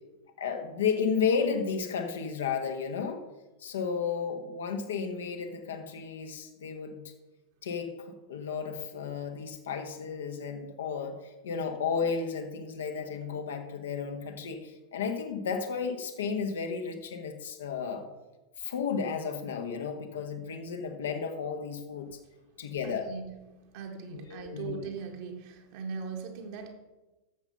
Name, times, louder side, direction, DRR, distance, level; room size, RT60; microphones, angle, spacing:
voice 1, 0.4-3.2 3.6-7.0 7.6-18.1 18.6-22.2 22.6-23.1 24.1-24.8, left 6 dB, 65° left, 5 dB, 1.3 m, -33 dB
voice 2, 22.8-26.7, right 5 dB, 50° right, 3 dB, 1.8 m, -40 dB
11.0 x 7.3 x 5.6 m, 1.1 s
figure-of-eight pair, 90°, 0 cm